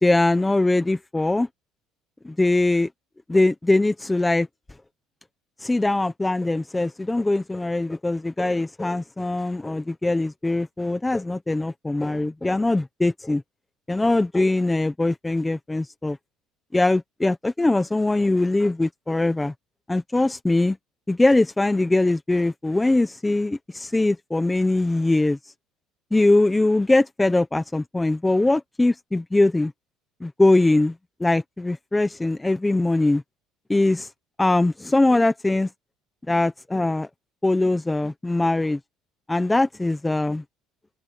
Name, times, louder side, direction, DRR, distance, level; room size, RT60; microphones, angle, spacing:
voice 1, 0.0-1.5 2.2-2.9 3.3-4.5 5.6-13.4 13.9-16.2 16.7-19.5 19.9-20.8 21.1-25.5 26.1-29.7 30.2-30.9 31.2-33.2 33.7-34.1 34.4-35.7 36.3-37.1 37.4-38.8 39.3-40.4, left 2 dB, 10° left, 0.9 m, -21 dB
open air
cardioid pair, 150°, 0 cm